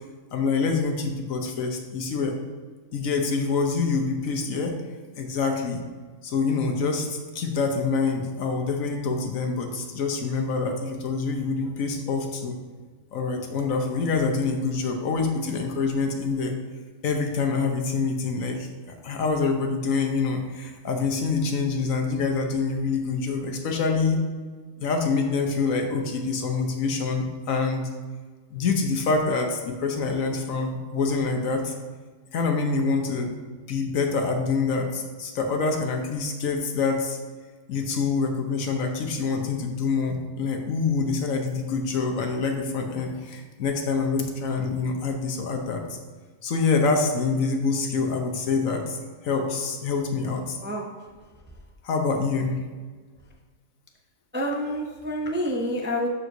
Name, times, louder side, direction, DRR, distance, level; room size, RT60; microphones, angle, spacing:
voice 1, 0.3-2.3 2.9-4.7 5.2-5.8 6.2-12.6 13.1-16.5 17.0-18.7 19.0-24.2 24.8-27.9 28.5-31.7 32.3-33.3 33.7-37.2 37.7-45.8 46.4-49.0 49.2-50.6 51.8-52.6, left 4 dB, 75° left, 3 dB, 1.3 m, -26 dB
voice 2, 50.6-50.9 54.3-56.1, equal, 15° right, 0 dB, 0.4 m, -28 dB
12.5 x 4.6 x 2.7 m, 1.5 s
omnidirectional pair, 1.4 m